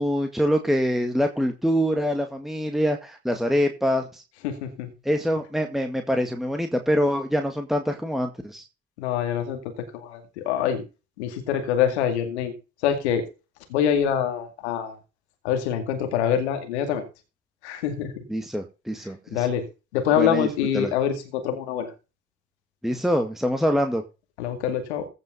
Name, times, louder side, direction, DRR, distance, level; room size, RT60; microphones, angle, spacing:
voice 1, 0.0-4.2 5.1-8.6 18.3-19.5 20.2-20.5 20.7-20.9 22.8-24.0, equal, ahead, 5 dB, 2.0 m, -24 dB
voice 2, 4.4-4.9 9.0-10.8 11.2-12.5 12.8-13.2 13.7-14.9 15.4-17.0 17.6-18.2 19.3-19.7 19.9-21.9 24.4-25.1, left 9 dB, 85° left, 7 dB, 2.2 m, -25 dB
16.0 x 5.5 x 5.5 m, 0.31 s
hypercardioid pair, 60°, 33 cm